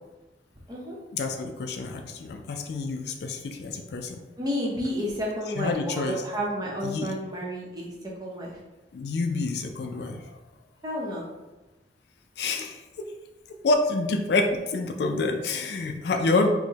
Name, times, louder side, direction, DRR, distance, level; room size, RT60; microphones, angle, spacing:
voice 1, 1.1-4.2 5.4-6.3 6.8-7.1 8.9-10.3 12.4-12.8 13.6-16.5, left 3 dB, 70° left, 4 dB, 0.4 m, -27 dB
voice 2, 4.4-7.9 8.2-8.5 10.8-11.2, equal, 20° right, -3 dB, 0.7 m, -31 dB
4.5 x 2.1 x 2.8 m, 1.1 s
head